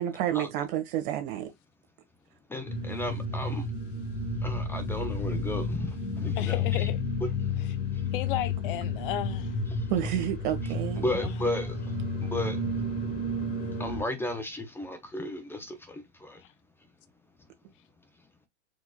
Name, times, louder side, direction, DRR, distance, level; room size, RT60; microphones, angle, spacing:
voice 1, 0.0-1.5 9.9-11.1, right 11 dB, 45° right, 1.4 m, -30 dB
voice 2, 2.5-3.7 4.4-5.7 6.2-6.9 7.9-8.0 9.7-9.9 11.0-11.9 12.2-12.6 13.8-16.4, left 1 dB, 5° left, 0.6 m, -34 dB
sound 1, 2.7-14.0, left 3 dB, 25° left, 1.3 m, -31 dB
voice 3, 6.4-7.0 8.1-9.6 11.2-11.3, left 14 dB, 50° left, 0.7 m, -34 dB
4.7 x 2.9 x 2.3 m
hypercardioid pair, 110°, 35 cm